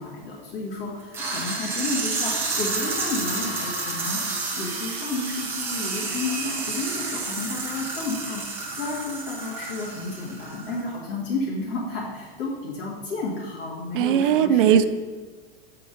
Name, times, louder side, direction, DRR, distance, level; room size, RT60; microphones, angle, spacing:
voice 1, 0.0-14.8, left 3 dB, 60° left, -5 dB, 1.7 m, -32 dB
sound 1, 1.1-10.9, right 3 dB, 5° right, 0.7 m, -30 dB
voice 2, 13.9-14.9, right 9 dB, 60° right, 12 dB, 0.5 m, -18 dB
7.0 x 3.8 x 5.0 m, 1.4 s
supercardioid pair, 170°, 31 cm